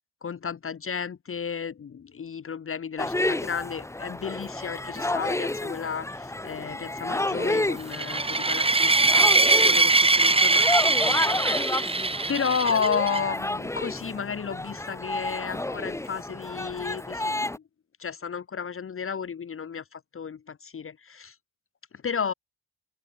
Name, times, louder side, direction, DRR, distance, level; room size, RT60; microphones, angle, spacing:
voice 1, 0.2-17.6 18.0-21.3 22.0-22.3, left 6 dB, 30° left, 1.5 m, -33 dB
sound 1, 3.0-17.6, left 2 dB, 5° left, 1.3 m, -31 dB
sound 2, 7.9-13.2, right 3 dB, 15° right, 1.9 m, -22 dB
open air
figure-of-eight pair, 50°, 42 cm